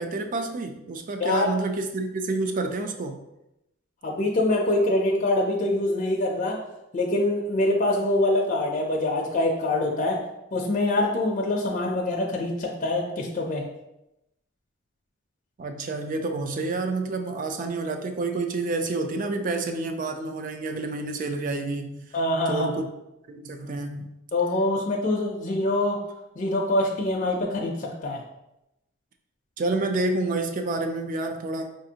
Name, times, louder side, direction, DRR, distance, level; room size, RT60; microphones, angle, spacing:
voice 1, 0.0-3.2 15.6-22.0 22.5-22.9 23.3-24.1 29.6-31.7, right 2 dB, 40° right, 6 dB, 0.3 m, -29 dB
voice 2, 4.0-6.6 6.9-10.2 10.5-13.7 22.1-22.7 24.3-26.0 26.4-28.2, left 1 dB, 40° left, -1 dB, 0.4 m, -24 dB
4.7 x 2.5 x 2.8 m, 0.89 s
head